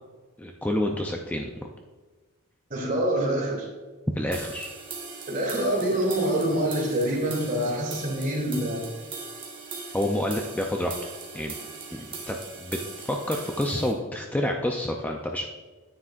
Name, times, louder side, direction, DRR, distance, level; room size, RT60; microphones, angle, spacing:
voice 1, 0.4-1.5 4.2-4.7 9.9-11.0 11.3-11.5 11.9-12.8 13.1-15.5, left 1 dB, 10° left, 2 dB, 0.5 m, -28 dB
voice 2, 2.7-3.7 5.3-8.9, right 1 dB, 40° right, -2 dB, 2.9 m, -26 dB
sound 1, 4.3-13.9, right 4 dB, 25° right, 1.5 m, -40 dB
9.8 x 9.6 x 2.5 m, 1.3 s
head